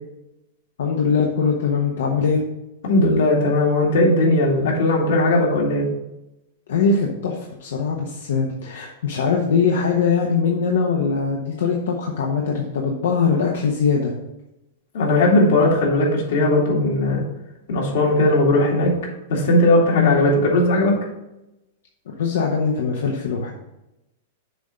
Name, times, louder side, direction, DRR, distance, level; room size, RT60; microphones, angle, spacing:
voice 1, 0.8-2.4 6.7-14.1 19.9-20.2 22.2-23.5, left 5 dB, 90° left, 0 dB, 1.0 m, -21 dB
voice 2, 2.8-5.9 14.9-17.2 17.7-18.9 19.3-21.0, left 1 dB, 70° left, -1 dB, 2.4 m, -18 dB
7.0 x 3.8 x 5.7 m, 0.93 s
supercardioid pair, 165°, 0 cm